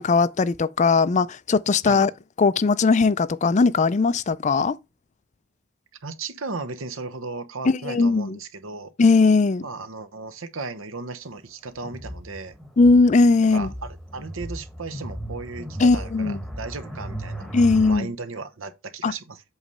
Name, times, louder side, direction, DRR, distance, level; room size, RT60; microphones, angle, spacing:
voice 1, 0.0-2.1 2.4-4.8 7.6-8.4 9.0-9.7 12.8-13.7 15.8-16.4 17.5-18.1 19.0-19.1, left 4 dB, 35° left, 0.4 m, -19 dB
voice 2, 6.0-8.9 9.6-12.6 13.5-17.5 17.9-19.4, right 3 dB, 70° right, 0.9 m, -35 dB
sound 1, 11.8-18.0, right 1 dB, ahead, 1.1 m, -36 dB
8.1 x 3.2 x 5.4 m
head